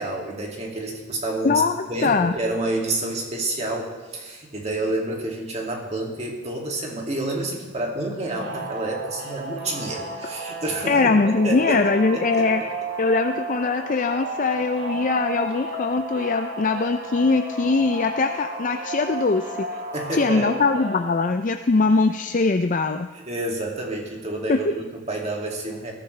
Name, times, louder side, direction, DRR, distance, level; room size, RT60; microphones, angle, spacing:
voice 1, 0.0-1.6 1.9-11.2 11.4-11.9 12.1-12.5 19.9-20.5 23.1-25.9, right 2 dB, 35° right, 0 dB, 2.3 m, -29 dB
voice 2, 1.4-2.3 10.9-12.6 13.0-19.7 20.1-23.1 24.5-24.6, left 4 dB, 40° left, 7 dB, 0.4 m, -21 dB
sound 1, 8.3-21.1, right 2 dB, 65° right, 2.8 m, -33 dB
20.5 x 13.5 x 3.3 m, 1.4 s
head